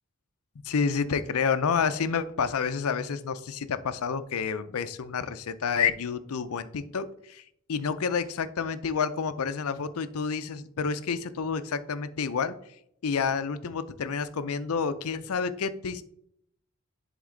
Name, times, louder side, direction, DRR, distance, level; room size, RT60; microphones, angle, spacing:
voice 1, 0.6-7.4 7.7-12.5 13.0-16.0, left 6 dB, 80° left, 13 dB, 0.5 m, -29 dB
10.5 x 3.6 x 3.8 m, 0.72 s
head